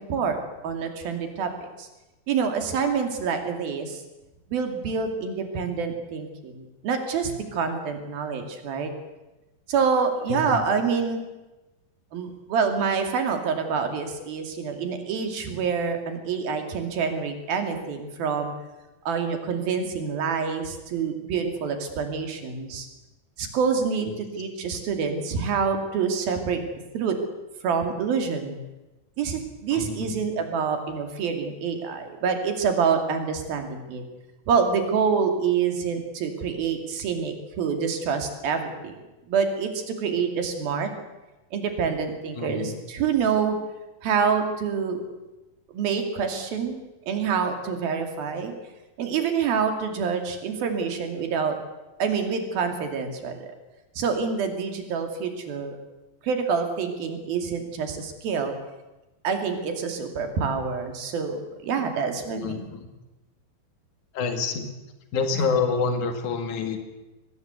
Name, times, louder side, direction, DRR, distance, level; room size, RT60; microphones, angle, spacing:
voice 1, 0.6-1.5 1.8-1.9 2.3-4.0 4.5-8.9 9.7-11.2 12.1-18.5 19.1-22.9 23.4-26.6 26.9-27.2 27.6-28.6 29.2-34.0 34.5-38.9 39.3-40.9 41.5-43.6 44.0-45.0 45.7-46.8 47.1-48.5 49.0-51.6 52.0-53.5 54.0-55.8 56.2-58.5 59.2-62.6 65.3-65.5, right 6 dB, 80° right, 5 dB, 4.4 m, -26 dB
voice 2, 10.3-10.6 24.0-24.1 29.7-30.2 42.4-42.8 62.4-62.9 64.1-64.7 65.1-66.8, left 5 dB, 60° left, 6 dB, 3.6 m, -27 dB
23.0 x 19.0 x 8.2 m, 1.1 s
omnidirectional pair, 4.2 m